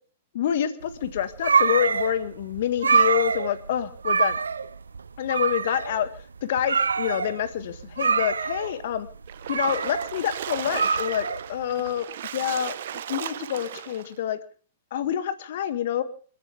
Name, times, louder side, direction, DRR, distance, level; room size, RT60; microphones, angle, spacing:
voice 1, 0.3-4.4 5.2-6.1 6.5-9.1 9.5-12.1 12.3-12.7 13.1-14.4 14.9-16.0, left 10 dB, 60° left, 11 dB, 1.8 m, -27 dB
sound 1, 0.9-11.9, right 5 dB, 80° right, 0.9 m, -25 dB
Splash splatter, 9.3-14.1, right 10 dB, 60° right, 1.2 m, -36 dB
30.0 x 10.5 x 3.6 m, 0.41 s
figure-of-eight pair, 105°, 0 cm